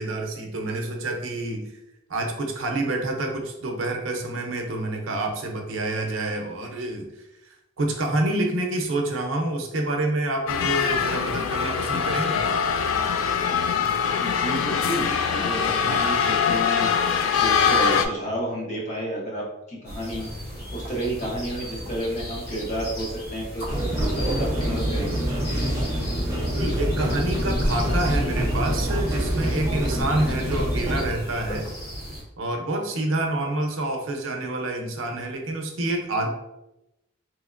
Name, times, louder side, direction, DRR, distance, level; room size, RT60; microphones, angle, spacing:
voice 1, 0.0-1.7 2.1-7.1 7.5-12.5 26.5-31.7 32.4-36.3, right 2 dB, 75° right, 2 dB, 0.6 m, -27 dB
sound 1, 10.5-18.1, left 6 dB, 85° left, 0.3 m, -23 dB
voice 2, 14.2-20.3 20.7-23.7 24.0-25.3, right 1 dB, 35° left, -3 dB, 0.8 m, -31 dB
sound 2, 19.8-32.2, equal, 50° left, 1.4 m, -36 dB
sound 3, 23.7-31.1, equal, 15° right, 0.6 m, -25 dB
3.0 x 2.8 x 2.5 m, 0.92 s
head